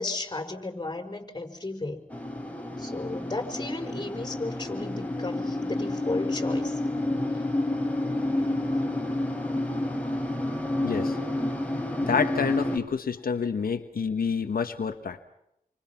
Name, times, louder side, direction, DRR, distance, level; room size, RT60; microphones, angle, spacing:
voice 1, 0.0-2.0 2.8-6.8 8.4-8.5, left 2 dB, 30° left, 5 dB, 5.3 m, -34 dB
sound 1, 2.1-12.8, left 1 dB, 10° left, 4.5 m, -29 dB
voice 2, 10.8-11.2 12.0-15.2, left 6 dB, 90° left, 7 dB, 1.4 m, -28 dB
29.0 x 25.0 x 5.9 m, 0.78 s
wide cardioid pair, 75°, 15 cm